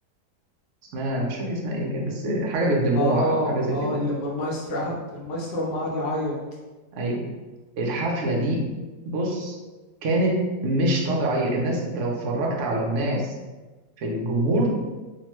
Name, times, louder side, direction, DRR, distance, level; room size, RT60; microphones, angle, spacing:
voice 1, 0.9-3.9 6.9-7.2 7.8-8.6 9.1-9.6 10.0-13.3 14.0-14.8, right 1 dB, 70° right, -1 dB, 0.7 m, -25 dB
voice 2, 2.9-6.4, left 1 dB, 75° left, -4 dB, 1.2 m, -27 dB
2.9 x 2.1 x 2.9 m, 1.2 s
omnidirectional pair, 1.8 m